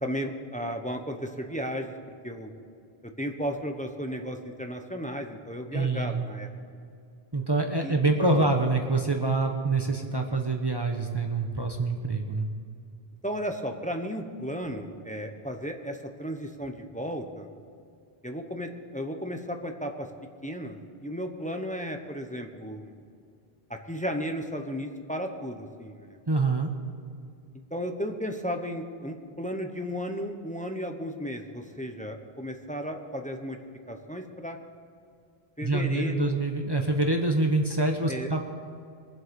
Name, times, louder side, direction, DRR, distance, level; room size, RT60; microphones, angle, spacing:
voice 1, 0.0-1.9 2.2-2.5 3.2-6.8 7.8-8.5 13.2-17.5 18.2-20.1 20.4-22.9 23.9-26.2 27.7-33.6 33.9-34.6 35.6-36.4 38.1-38.3, equal, 10° left, 4 dB, 0.9 m, -34 dB
voice 2, 5.7-6.2 7.3-12.5 26.3-26.7 35.6-38.4, right 2 dB, 25° right, 2 dB, 1.0 m, -26 dB
22.0 x 7.8 x 5.3 m, 2.4 s
omnidirectional pair, 1.0 m